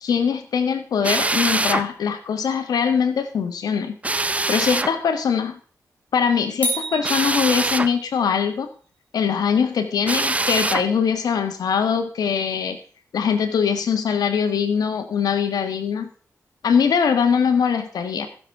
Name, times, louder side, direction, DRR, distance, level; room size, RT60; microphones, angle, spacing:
voice 1, 0.0-4.0 4.5-5.6 6.1-8.7 9.1-12.8 13.1-16.1 16.6-18.3, left 6 dB, 85° left, 8 dB, 1.7 m, -22 dB
Drill, 1.0-1.9 4.0-4.9 7.0-7.9 10.0-10.9, right 2 dB, 20° right, 0.6 m, -23 dB
sound 1, 6.6-8.2, right 1 dB, 25° left, 4.0 m, -29 dB
15.0 x 7.2 x 4.8 m, 0.41 s
cardioid pair, 70°, 6 cm